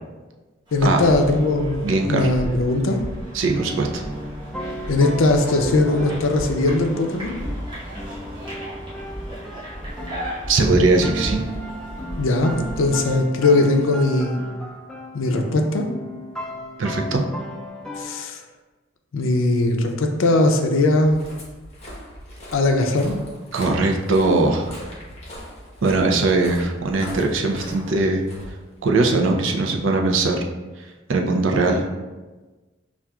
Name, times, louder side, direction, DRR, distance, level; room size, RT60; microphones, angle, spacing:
voice 1, 0.7-3.0 4.9-7.4 12.2-14.4 15.1-15.9 18.0-18.4 19.1-21.2 22.5-23.2, left 2 dB, 85° left, 4 dB, 0.5 m, -20 dB
sound 1, 0.7-13.2, equal, 25° right, 1.0 m, -34 dB
voice 2, 1.8-2.3 3.3-4.0 10.5-11.4 16.8-17.2 23.5-24.7 25.8-28.2 28.8-30.4 31.1-31.8, right 3 dB, 75° right, 2 dB, 0.5 m, -20 dB
sound 2, 3.6-18.1, equal, 5° left, 0.4 m, -35 dB
Walk footsteps, 20.8-29.1, equal, 30° left, 0.9 m, -40 dB
5.5 x 2.4 x 2.3 m, 1.2 s
head